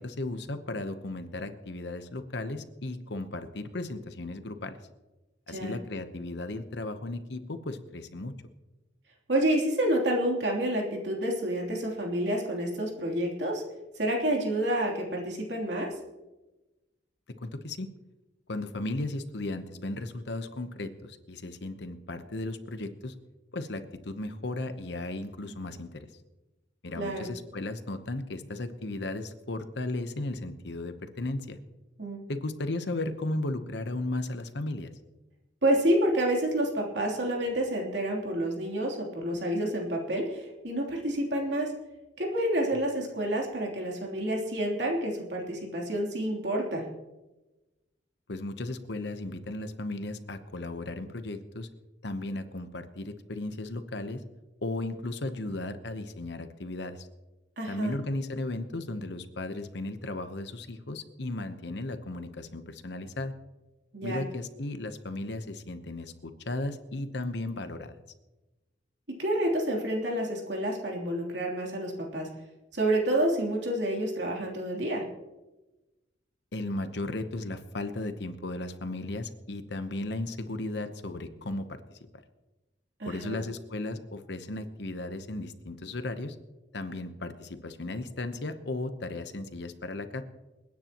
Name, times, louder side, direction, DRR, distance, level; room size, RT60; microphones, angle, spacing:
voice 1, 0.0-4.8 5.5-8.3 17.4-17.9 18.5-23.1 23.5-26.0 26.8-31.6 32.3-34.9 48.3-51.7 52.0-54.2 54.6-57.1 57.7-63.3 64.0-67.9 76.5-82.0 83.0-86.4 86.7-90.2, left 2 dB, 65° left, 9 dB, 0.9 m, -35 dB
voice 2, 9.3-13.6 13.9-15.9 27.0-27.3 32.0-32.2 35.6-41.7 42.2-46.8 57.6-57.9 63.9-64.2 69.2-72.3 72.7-75.0 83.0-83.4, right 1 dB, 65° right, -1 dB, 3.2 m, -29 dB
28.5 x 9.8 x 3.0 m, 1.1 s
head